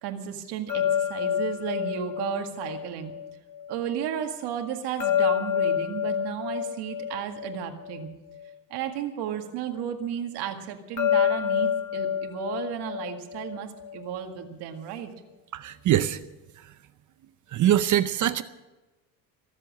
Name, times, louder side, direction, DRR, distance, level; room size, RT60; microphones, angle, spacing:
voice 1, 0.0-3.1 3.7-8.1 8.7-15.1, right 9 dB, 80° right, 5 dB, 2.0 m, -33 dB
sound 1, 0.7-3.8 5.0-8.5 11.0-14.1, left 9 dB, 45° left, 2.2 m, -28 dB
voice 2, 15.5-16.2 16.6-16.7 17.5-18.4, right 12 dB, 50° right, 12 dB, 0.7 m, -23 dB
23.0 x 7.7 x 7.5 m, 1.1 s
cardioid pair, 120°, 40 cm